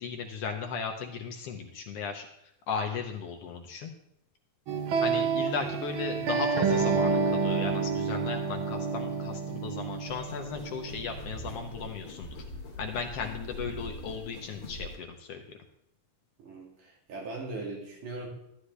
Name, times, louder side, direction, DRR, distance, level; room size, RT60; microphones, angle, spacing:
voice 1, 0.0-2.3 2.7-3.9 4.9-12.4 12.8-15.6, left 5 dB, 75° left, 4 dB, 1.4 m, -36 dB
sound 1, 4.7-11.7, right 5 dB, 70° right, 1.2 m, -29 dB
sound 2, 10.1-15.1, left 1 dB, 50° left, 2.1 m, -42 dB
voice 2, 16.4-18.3, right 2 dB, 85° right, -3 dB, 3.7 m, -39 dB
12.5 x 9.9 x 3.2 m, 0.80 s
omnidirectional pair, 3.5 m